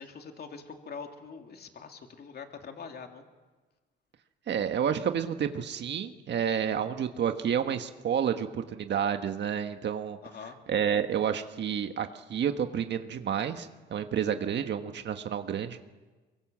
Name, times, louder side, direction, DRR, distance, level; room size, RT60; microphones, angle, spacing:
voice 1, 0.0-3.2 10.2-10.6, left 5 dB, 55° left, 4 dB, 2.8 m, -44 dB
voice 2, 4.5-10.2 10.7-15.8, right 8 dB, 60° right, 7 dB, 1.4 m, -30 dB
24.0 x 23.0 x 7.5 m, 1.3 s
cardioid pair, 90°, 20 cm